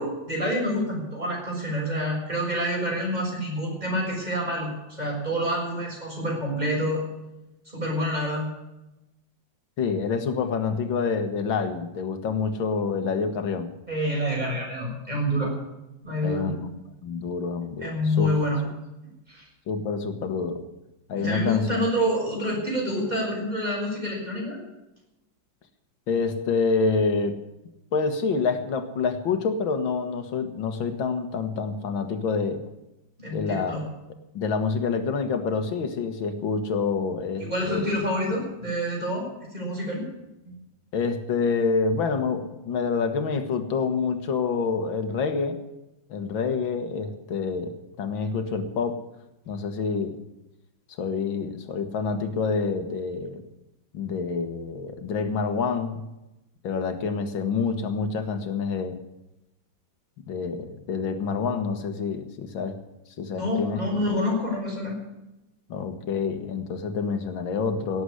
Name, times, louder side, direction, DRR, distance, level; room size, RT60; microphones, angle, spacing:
voice 1, 0.0-7.0 7.7-8.4 13.9-15.5 16.0-16.5 17.8-18.6 19.3-19.5 21.1-24.6 33.2-33.8 37.4-39.3 39.5-40.0 40.4-40.6 63.3-65.0, equal, 20° right, -2 dB, 6.8 m, -27 dB
voice 2, 9.8-13.7 16.2-16.7 17.0-18.3 19.7-20.6 21.1-21.9 26.1-27.4 27.9-32.6 33.3-33.8 34.3-38.0 40.9-45.6 46.1-49.0 49.5-50.2 51.0-53.4 53.9-56.0 56.6-59.0 60.3-62.8 63.2-63.8 65.7-68.0, left 5 dB, 90° left, 8 dB, 2.2 m, -27 dB
18.0 x 8.0 x 9.7 m, 0.95 s
omnidirectional pair, 2.1 m